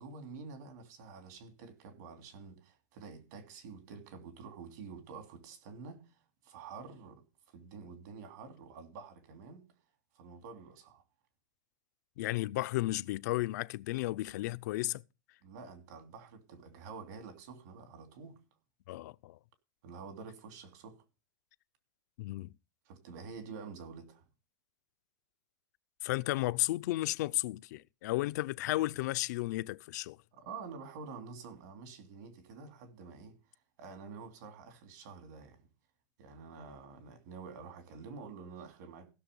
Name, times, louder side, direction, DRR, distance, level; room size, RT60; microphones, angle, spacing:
voice 1, 0.0-7.2 7.5-9.6 10.1-11.0 15.4-18.4 19.8-21.0 22.8-24.3 30.3-33.4 33.8-35.7 36.2-39.1, right 5 dB, 70° right, 3.2 m, -48 dB
voice 2, 12.2-15.0 18.9-19.4 22.2-22.5 26.0-30.2, left 18 dB, 70° left, 0.5 m, -33 dB
15.5 x 6.8 x 5.3 m
supercardioid pair, 165°, 10 cm